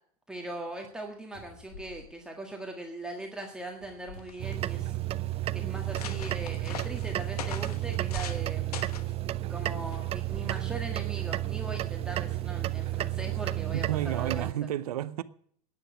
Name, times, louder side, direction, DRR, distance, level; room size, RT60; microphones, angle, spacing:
voice 1, 0.3-5.0 5.5-8.8 9.5-14.5, right 2 dB, 5° right, 1.7 m, -40 dB
sound 1, 1.3-3.0 3.7-5.1 5.6-5.7 6.6-7.7 8.7-8.8 12.0-13.6 14.3-14.4, left 5 dB, 50° left, 3.5 m, -53 dB
sound 2, 3.9-4.0 4.2-4.8 5.4-5.5 5.7-8.4 8.7-9.1 9.9-10.2, left 9 dB, 85° left, 1.2 m, -42 dB
sound 3, 4.4-14.5, right 14 dB, 30° right, 0.5 m, -32 dB
voice 2, 13.7-15.2, right 12 dB, 80° right, 0.7 m, -31 dB
10.5 x 9.6 x 9.7 m
hypercardioid pair, 110°, 19 cm